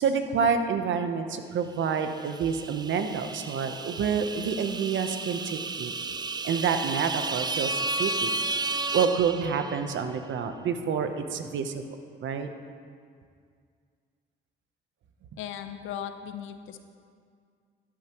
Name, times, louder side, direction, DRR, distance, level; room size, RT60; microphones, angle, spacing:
voice 1, 0.0-5.9 6.4-8.4 8.9-11.8 12.2-12.5, right 6 dB, 70° right, 7 dB, 0.9 m, -28 dB
sound 1, 2.0-10.0, right 3 dB, 20° right, 0.4 m, -33 dB
voice 2, 15.4-16.8, left 9 dB, 85° left, 9 dB, 0.7 m, -37 dB
12.5 x 11.5 x 3.0 m, 2.1 s
cardioid pair, 90°, 20 cm